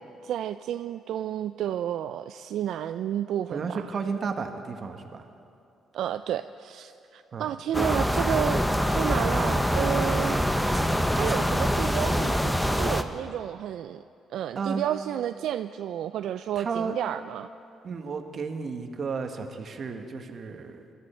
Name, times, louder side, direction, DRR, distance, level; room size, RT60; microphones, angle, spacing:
voice 1, 0.2-3.9 5.9-8.6 8.9-10.5 10.9-14.0 14.3-17.5, right 10 dB, 80° right, 11 dB, 0.3 m, -31 dB
voice 2, 3.5-5.2 7.3-7.5 7.7-8.3 14.5-14.9 16.6-17.0 17.8-20.8, right 5 dB, 50° right, 6 dB, 1.4 m, -33 dB
sound 1, 7.7-13.0, equal, 5° left, 0.8 m, -24 dB
22.0 x 13.5 x 4.4 m, 2.6 s
cardioid pair, 90°, 0 cm